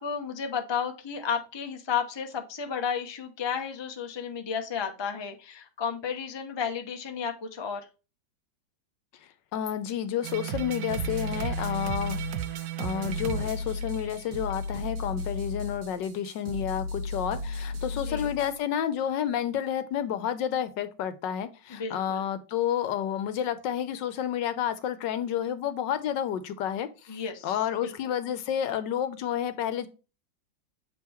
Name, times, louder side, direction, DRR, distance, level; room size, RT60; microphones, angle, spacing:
voice 1, 0.0-7.9 17.9-18.3 21.7-22.2 27.1-27.9, left 7 dB, 30° left, 4 dB, 0.4 m, -33 dB
voice 2, 9.5-12.2 12.8-27.2 27.4-29.9, left 9 dB, 75° left, 12 dB, 1.4 m, -30 dB
sound 1, 10.2-14.7, right 13 dB, 80° right, 1.3 m, -34 dB
sound 2, 10.9-18.6, left 3 dB, 60° right, 2.1 m, -35 dB
7.4 x 3.7 x 4.3 m, 0.32 s
omnidirectional pair, 2.0 m